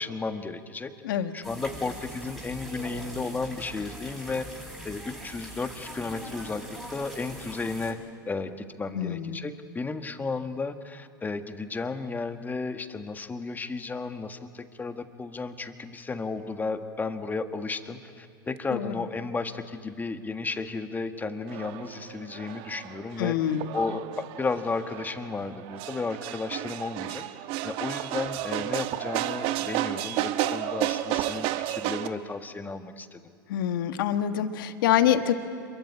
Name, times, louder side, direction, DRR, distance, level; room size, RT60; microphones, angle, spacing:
voice 1, 0.0-6.6 6.9-8.0 8.2-23.4 23.7-27.2 27.6-33.2, left 3 dB, 15° left, 8 dB, 1.6 m, -33 dB
sound 1, 1.4-7.9, right 1 dB, ahead, 7.0 m, -42 dB
voice 2, 8.9-9.4 18.7-18.9 23.2-23.7 33.5-35.3, left 10 dB, 70° left, 8 dB, 1.7 m, -25 dB
sound 2, 21.5-32.1, right 13 dB, 50° right, 1.2 m, -32 dB
27.0 x 23.0 x 8.8 m, 2.5 s
hypercardioid pair, 100°, 12 cm